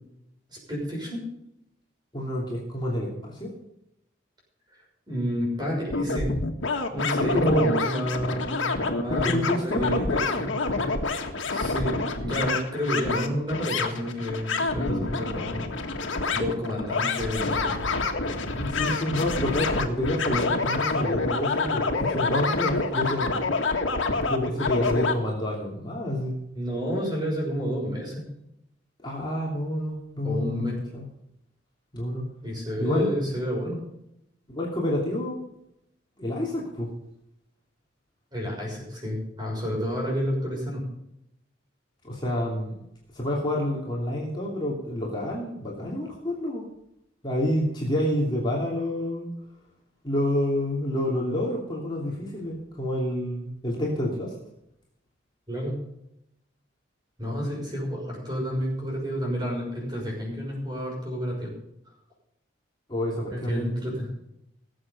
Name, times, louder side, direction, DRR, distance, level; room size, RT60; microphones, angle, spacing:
voice 1, 0.5-1.2 5.1-6.4 6.9-8.7 8.9-10.5 11.5-15.7 16.3-17.8 26.5-28.3 30.2-30.8 32.4-33.8 38.3-40.8 55.5-55.8 57.2-61.5 63.3-64.1, equal, 20° right, -2 dB, 6.3 m, -30 dB
voice 2, 2.1-3.5 7.3-7.7 9.1-10.4 18.6-23.3 24.3-26.3 29.0-30.7 30.9-31.0 31.9-32.2 32.8-33.1 34.5-35.4 36.2-36.9 42.0-42.7 43.1-46.7 47.2-49.3 50.0-54.3 62.9-64.0, left 1 dB, 25° left, -4 dB, 3.0 m, -28 dB
sound 1, 5.9-25.1, left 3 dB, 90° left, 1.7 m, -27 dB
18.5 x 7.9 x 5.5 m, 0.81 s
head